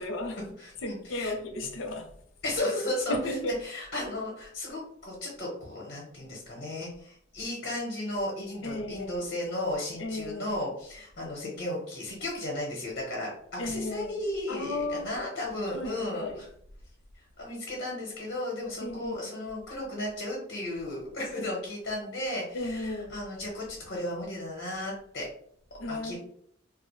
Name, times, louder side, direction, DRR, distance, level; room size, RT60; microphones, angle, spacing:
voice 1, 0.0-0.4 0.8-2.1 3.1-3.6 8.6-9.2 10.0-10.5 13.6-14.2 14.5-15.2 15.7-16.4 18.8-19.2 22.5-23.2 25.8-26.2, left 1 dB, 85° left, 0.5 m, -34 dB
voice 2, 0.6-1.3 2.4-16.5 17.4-25.3 25.9-26.2, left 1 dB, 55° left, 0.8 m, -34 dB
2.4 x 2.0 x 3.0 m
head